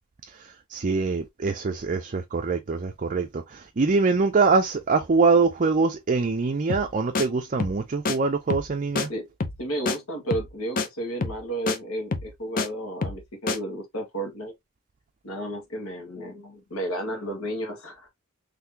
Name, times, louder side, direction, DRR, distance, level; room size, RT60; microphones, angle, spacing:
voice 1, 0.7-9.1, right 4 dB, 40° right, 0.5 m, -24 dB
sound 1, 6.7-6.9 7.1-7.3 7.6-8.2 8.5-8.7 9.0-9.1 9.4-9.6 9.9-10.0 10.3-10.5 10.8-10.9 11.2-11.4 11.7-11.8 12.1-12.7 13.0-13.2 13.5-13.6, left 4 dB, 40° left, 0.6 m, -27 dB
voice 2, 9.6-14.5 15.2-18.1, right 1 dB, 80° left, 1.7 m, -32 dB
3.9 x 3.2 x 2.8 m
head